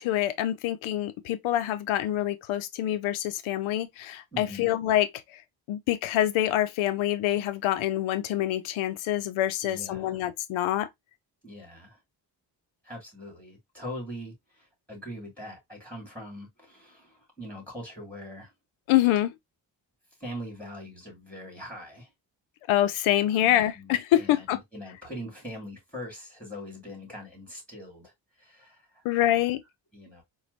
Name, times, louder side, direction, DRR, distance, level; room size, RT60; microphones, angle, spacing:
voice 1, 0.0-5.1 5.7-10.9 18.9-19.3 22.7-24.6 29.0-29.6, left 13 dB, 85° left, 0.6 m, -26 dB
voice 2, 4.3-4.7 9.6-10.2 11.4-12.0 12.8-18.5 20.2-22.1 23.3-28.1 28.4-29.5 29.9-30.2, equal, 5° left, 2.4 m, -42 dB
4.2 x 2.3 x 2.4 m
cardioid pair, 65°, 47 cm